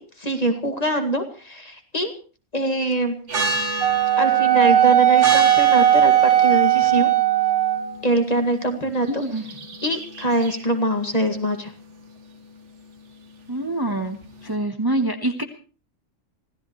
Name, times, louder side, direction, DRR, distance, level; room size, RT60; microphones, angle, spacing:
voice 1, 0.0-2.1 2.5-3.1 4.2-7.1 8.0-9.2 9.8-11.7, right 1 dB, 30° left, 5 dB, 2.1 m, -23 dB
sound 1, 3.3-14.5, right 3 dB, 65° right, 1.8 m, -32 dB
Wind instrument woodwind instrument, 3.8-8.0, right 11 dB, 80° right, 1.8 m, -17 dB
voice 2, 9.1-9.4 13.5-15.4, right 1 dB, 20° right, 5 dB, 1.2 m, -25 dB
26.0 x 16.0 x 3.2 m, 0.37 s
omnidirectional pair, 1.3 m